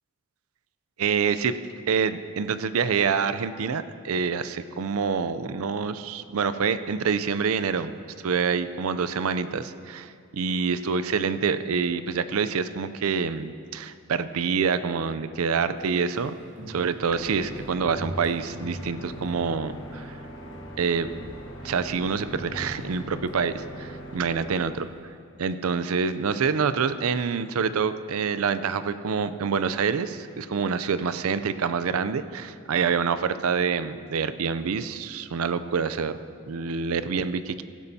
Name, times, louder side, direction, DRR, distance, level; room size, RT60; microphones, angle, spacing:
voice 1, 1.0-1.6 1.9-7.9 8.2-16.3 16.7-20.2 20.8-21.1 21.6-24.9 25.4-36.2 36.5-37.6, right 5 dB, 80° right, 13 dB, 0.5 m, -26 dB
Walk footsteps, 15.8-20.1 20.4-20.8 21.0-23.4 23.7-23.8, equal, 60° right, 2.7 m, -42 dB
sound 1, 17.0-24.6, equal, 65° left, 1.2 m, -41 dB
15.5 x 12.0 x 2.8 m, 2.3 s
head